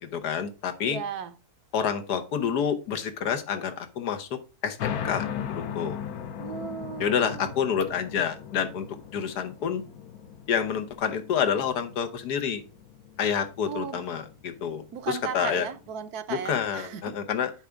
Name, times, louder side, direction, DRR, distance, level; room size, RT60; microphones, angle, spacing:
voice 1, 0.0-1.0 1.7-6.0 7.0-8.9 9.1-9.8 10.5-12.6 13.2-15.7 16.3-17.5, left 7 dB, 90° left, 1.5 m, -28 dB
voice 2, 0.8-1.3 6.4-7.5 13.7-14.0 14.9-17.2, right 7 dB, 75° right, 1.3 m, -36 dB
sound 1, 4.8-15.9, left 8 dB, 75° left, 1.2 m, -38 dB
9.0 x 3.5 x 5.0 m
omnidirectional pair, 1.7 m